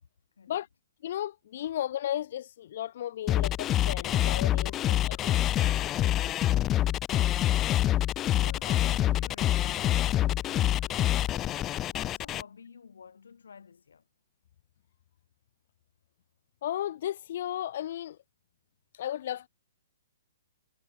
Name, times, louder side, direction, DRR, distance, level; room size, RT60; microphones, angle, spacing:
voice 1, 1.0-6.4 16.6-18.2 18.9-19.5, left 11 dB, 55° left, 0.9 m, -35 dB
sound 1, 3.3-12.4, left 13 dB, 20° left, 0.3 m, -26 dB
voice 2, 8.3-14.1, left 6 dB, 80° left, 5.6 m, -51 dB
hypercardioid pair, 140°, 0 cm